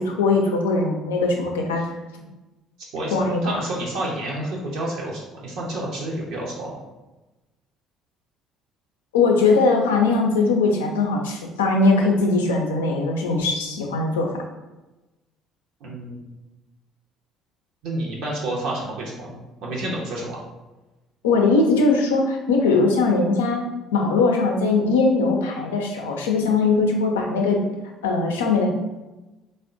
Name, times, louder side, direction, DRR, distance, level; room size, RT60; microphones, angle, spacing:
voice 1, 0.0-1.8 2.1-2.2 3.1-3.5 9.1-14.4 21.2-23.6 23.9-27.6 28.0-28.7, left 3 dB, 75° left, 1 dB, 0.4 m, -20 dB
voice 2, 3.4-6.8 15.8-16.3 17.8-20.4, right 1 dB, 60° right, -3 dB, 0.6 m, -30 dB
3.4 x 2.1 x 2.5 m, 1.1 s
figure-of-eight pair, 55°, 0 cm